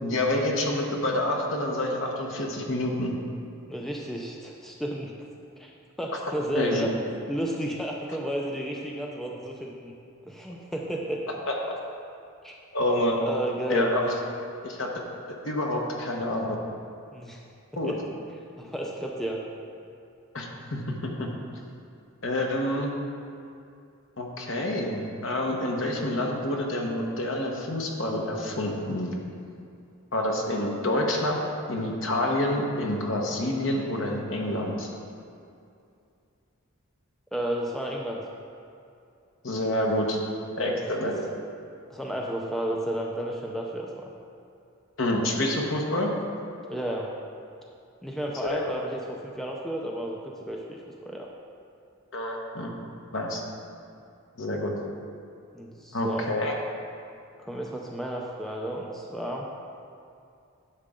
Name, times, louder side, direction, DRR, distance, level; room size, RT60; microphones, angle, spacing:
voice 1, 0.0-3.1 6.5-6.9 11.5-11.6 12.7-13.2 13.7-14.1 14.6-14.9 15.3-16.5 17.8-17.9 20.3-21.3 22.2-22.9 24.2-29.2 30.1-31.4 31.7-34.9 39.4-40.2 40.6-41.2 45.0-46.1 48.5-48.6 52.1-52.7 53.1-53.4 54.4-54.7 55.9-56.5, left 1 dB, 60° left, 0 dB, 1.2 m, -27 dB
voice 2, 3.7-5.1 5.6-5.7 6.0-6.9 7.3-9.9 10.3-11.4 12.4-12.5 13.2-13.9 17.1-17.4 17.8-18.0 18.6-19.4 37.3-38.2 40.5-40.8 41.9-44.1 46.7-47.1 48.0-51.3 55.5-56.3 57.4-59.5, right 1 dB, ahead, -1 dB, 0.5 m, -32 dB
11.0 x 6.5 x 3.7 m, 2.5 s
head